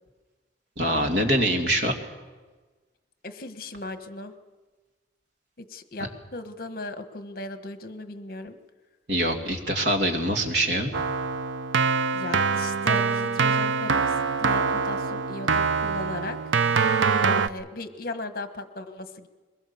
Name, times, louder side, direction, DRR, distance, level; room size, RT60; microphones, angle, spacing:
voice 1, 0.8-1.9 9.1-10.9, right 1 dB, 60° right, 3 dB, 2.6 m, -24 dB
voice 2, 3.2-4.3 5.6-8.6 12.1-16.4 17.2-19.3, left 2 dB, 50° left, 9 dB, 1.3 m, -37 dB
Keyboard (musical), 10.9-17.5, right 5 dB, 90° right, 0.6 m, -24 dB
22.0 x 21.0 x 7.1 m, 1.3 s
head